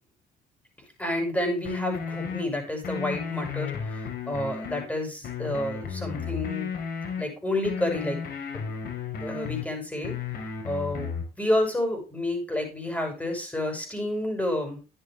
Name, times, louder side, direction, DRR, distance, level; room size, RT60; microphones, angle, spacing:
voice 1, 1.0-6.7 7.2-8.2 8.5-8.7 9.2-11.1 11.4-14.8, left 1 dB, 10° left, 3 dB, 7.6 m, -30 dB
sound 1, 1.6-2.4 2.8-4.8 5.2-7.2 7.6-9.6 10.0-11.2, left 6 dB, 65° left, 4.7 m, -33 dB
13.5 x 9.8 x 3.5 m, 0.32 s
cardioid pair, 110°, 17 cm